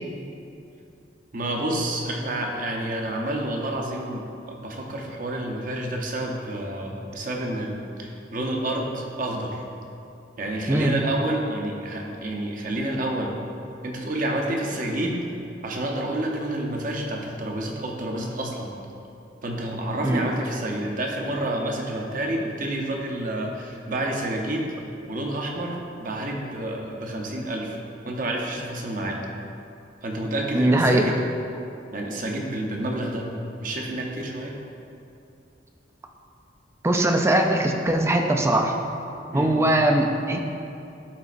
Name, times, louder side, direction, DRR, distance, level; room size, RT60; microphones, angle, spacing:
voice 1, 1.3-9.6 10.4-13.4 13.8-15.2 15.6-18.8 19.4-27.8 28.0-29.2 30.0-31.2 31.9-33.3 33.6-34.6 39.3-39.6, right 1 dB, 50° right, 0 dB, 0.8 m, -29 dB
voice 2, 30.5-31.1 36.8-38.8 39.3-40.4, right 1 dB, 15° right, 3 dB, 0.4 m, -21 dB
11.5 x 4.0 x 2.5 m, 2.7 s
head